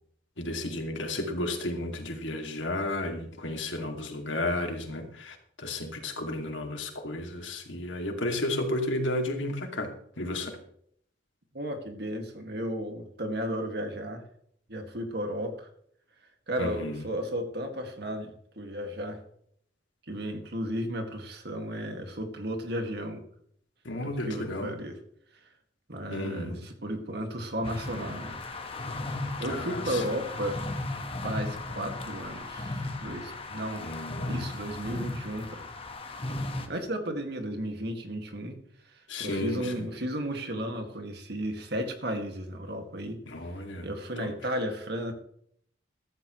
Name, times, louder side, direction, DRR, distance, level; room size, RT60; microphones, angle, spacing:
voice 1, 0.4-10.6 16.6-17.0 23.8-24.7 26.1-26.6 29.4-30.0 33.8-34.4 39.1-39.9 43.3-43.9 44.2-44.3, left 1 dB, 85° left, 3 dB, 2.6 m, -33 dB
voice 2, 11.5-14.2 14.7-15.7 16.5-19.2 20.1-23.2 24.0-24.9 25.9-26.6 26.8-28.4 29.4-30.7 31.2-33.8 34.3-35.6 36.7-38.6 39.2-43.2 43.8-45.1, equal, 60° right, 4 dB, 2.2 m, -34 dB
sound 1, 27.6-36.7, left 2 dB, 30° left, 1.4 m, -36 dB
15.0 x 13.5 x 3.2 m, 0.67 s
head